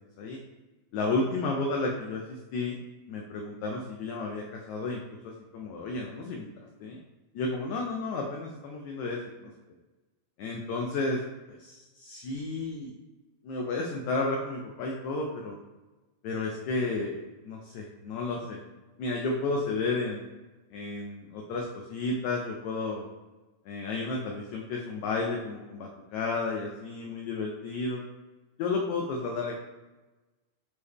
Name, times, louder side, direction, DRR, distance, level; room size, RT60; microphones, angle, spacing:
voice 1, 0.9-2.8 3.1-6.5 6.8-7.0 7.3-9.5 10.4-11.2 11.6-12.9 13.4-15.6 16.2-18.6 19.0-20.3 20.7-23.1 23.6-28.0 28.6-29.6, left 3 dB, 90° left, 0 dB, 1.6 m, -32 dB
6.6 x 4.1 x 3.4 m, 1.2 s
omnidirectional pair, 4.2 m